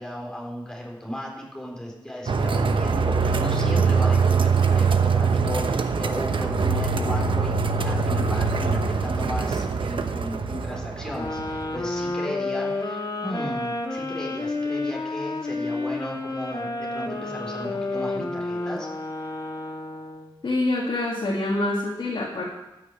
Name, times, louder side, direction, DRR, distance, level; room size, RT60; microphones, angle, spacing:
voice 1, 0.0-7.6 7.8-18.9, equal, 10° left, -3 dB, 3.9 m, -35 dB
sound 1, 2.3-12.0, right 5 dB, 75° right, 0.9 m, -23 dB
sound 2, 11.1-20.3, left 2 dB, 50° left, 1.7 m, -30 dB
voice 2, 20.4-22.4, left 2 dB, 70° left, -4 dB, 2.1 m, -26 dB
13.5 x 6.4 x 7.7 m, 0.99 s
wide cardioid pair, 100°, 9 cm